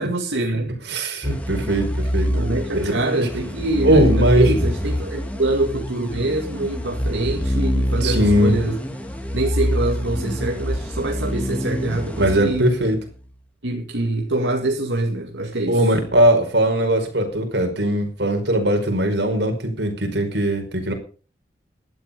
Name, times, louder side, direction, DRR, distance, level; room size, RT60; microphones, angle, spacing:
voice 1, 0.0-0.7 2.3-8.8 9.3-12.7 13.6-15.9, right 2 dB, 85° right, 2.1 m, -25 dB
voice 2, 0.9-2.3 2.7-2.9 3.8-4.5 8.0-8.6 12.2-13.0 15.7-20.9, right 1 dB, 70° right, 5.1 m, -19 dB
sound 1, 1.2-13.1, equal, 10° left, 2.7 m, -25 dB
16.0 x 12.0 x 5.3 m
head